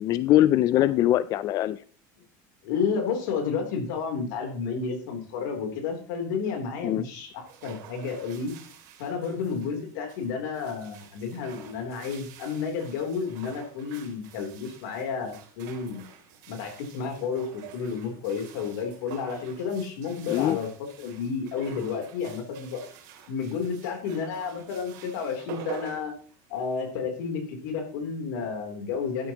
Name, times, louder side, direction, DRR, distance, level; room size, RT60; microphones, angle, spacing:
voice 1, 0.0-1.8 6.8-7.1 20.3-20.6, left 13 dB, 40° left, 16 dB, 0.4 m, -22 dB
voice 2, 2.6-8.5 9.0-16.0 16.5-20.7 21.0-22.8 23.3-26.1 26.5-29.3, left 5 dB, 90° left, 3 dB, 3.3 m, -31 dB
sound 1, 7.3-26.9, right 9 dB, 80° right, 2.6 m, -47 dB
11.5 x 9.7 x 3.0 m, 0.43 s
cardioid pair, 150°, 9 cm